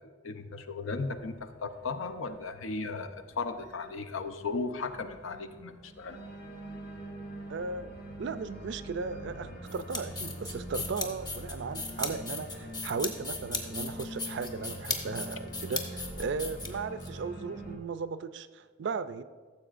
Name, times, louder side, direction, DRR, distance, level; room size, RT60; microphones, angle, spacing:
voice 1, 0.2-6.2, left 3 dB, 80° left, 8 dB, 0.6 m, -36 dB
Organ, 0.9-17.8, equal, 50° left, 1.1 m, -44 dB
voice 2, 7.5-19.2, right 4 dB, 60° right, 13 dB, 0.4 m, -36 dB
sound 1, 9.7-17.1, left 3 dB, 20° left, 0.8 m, -37 dB
14.5 x 7.2 x 2.5 m, 1.5 s
head